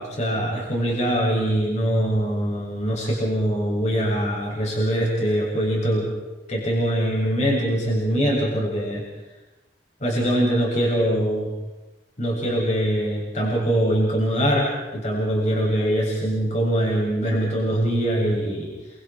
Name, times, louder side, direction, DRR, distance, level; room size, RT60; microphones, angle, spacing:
voice 1, 0.0-6.1 6.5-9.0 10.0-11.5 12.2-18.7, equal, 40° left, -4 dB, 7.5 m, -23 dB
29.5 x 26.5 x 4.6 m, 1.1 s
head